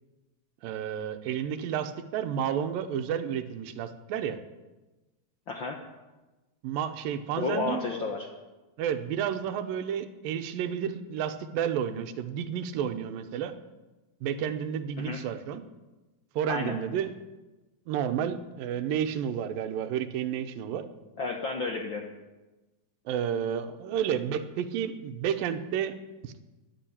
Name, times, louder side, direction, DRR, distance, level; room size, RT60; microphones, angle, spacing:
voice 1, 0.6-4.4 6.6-7.8 8.8-13.5 14.2-15.6 16.4-17.1 17.9-20.8 23.1-25.9 26.2-26.3, right 9 dB, 80° right, 9 dB, 2.6 m, -31 dB
voice 2, 5.5-5.8 7.3-8.3 15.0-15.2 16.5-16.7 21.2-22.1, left 3 dB, 75° left, 2 dB, 1.1 m, -31 dB
13.5 x 11.0 x 8.6 m, 1.1 s
omnidirectional pair, 4.2 m